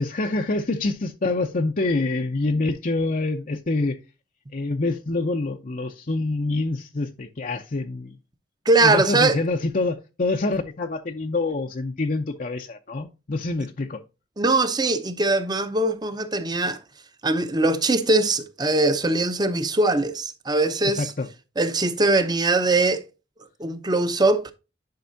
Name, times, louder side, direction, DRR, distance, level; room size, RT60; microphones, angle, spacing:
voice 1, 0.0-4.0 4.5-8.2 8.8-14.0 20.8-21.3, left 2 dB, 50° left, 0.7 m, -26 dB
voice 2, 8.7-9.4 14.4-16.8 17.2-21.1 21.6-23.0 23.6-24.5, right 2 dB, 25° right, 0.9 m, -21 dB
10.5 x 5.4 x 2.7 m
head